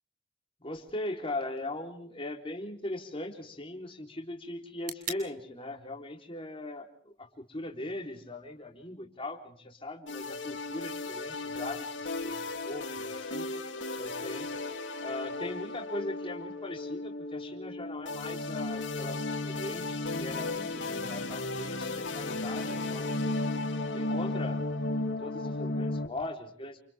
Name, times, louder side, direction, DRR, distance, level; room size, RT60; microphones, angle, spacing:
voice 1, 0.6-13.5 13.9-14.6 15.0-23.2 23.9-24.6 25.2-26.8, left 2 dB, 30° left, 2 dB, 3.9 m, -40 dB
sound 1, 0.8-8.7, right 6 dB, 50° right, 3.8 m, -50 dB
sound 2, 10.1-26.1, left 2 dB, 80° left, 3.1 m, -34 dB
29.5 x 28.5 x 3.6 m, 0.62 s
head